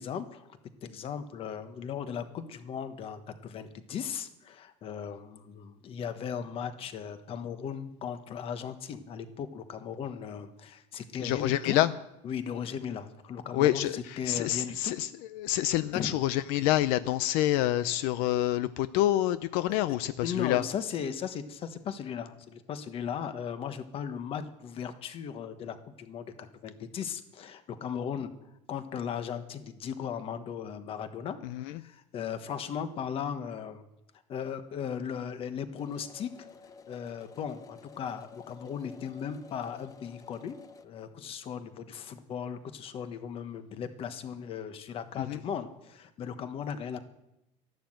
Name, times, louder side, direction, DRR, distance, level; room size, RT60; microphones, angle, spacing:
voice 1, 0.0-11.8 12.2-15.0 15.9-16.1 20.2-33.9 34.3-36.5 36.9-40.6 40.8-47.0, left 7 dB, 40° left, 10 dB, 1.3 m, -37 dB
voice 2, 11.2-11.9 13.5-20.6 31.4-31.8 45.2-45.4, left 14 dB, 80° left, 14 dB, 0.6 m, -27 dB
sound 1, 35.8-40.9, left 5 dB, 25° left, 0.8 m, -52 dB
13.0 x 11.5 x 7.7 m, 0.88 s
cardioid pair, 155°, 15 cm